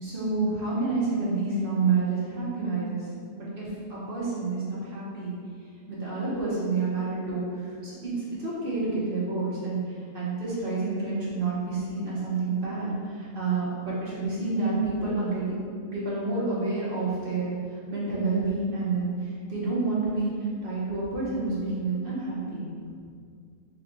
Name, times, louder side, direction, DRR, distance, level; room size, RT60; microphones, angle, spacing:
voice 1, 0.0-3.1 3.4-5.4 5.9-9.8 10.1-17.5 17.9-20.3 20.6-22.7, right 3 dB, 40° right, -8 dB, 1.2 m, -29 dB
4.1 x 3.2 x 3.9 m, 2.2 s
omnidirectional pair, 1.7 m